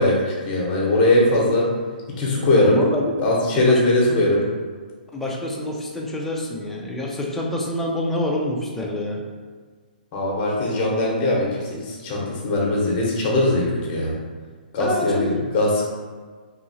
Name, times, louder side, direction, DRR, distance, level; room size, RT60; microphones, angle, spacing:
voice 1, 0.0-1.7 2.2-2.8 3.2-4.4 10.1-14.1 14.7-15.9, left 1 dB, 30° left, -3 dB, 0.8 m, -20 dB
voice 2, 2.5-3.1 3.5-3.8 4.1-4.2 5.1-9.2 14.8-15.4, left 1 dB, 5° left, -2 dB, 0.3 m, -26 dB
2.7 x 2.7 x 2.7 m, 1.5 s
hypercardioid pair, 150°, 5 cm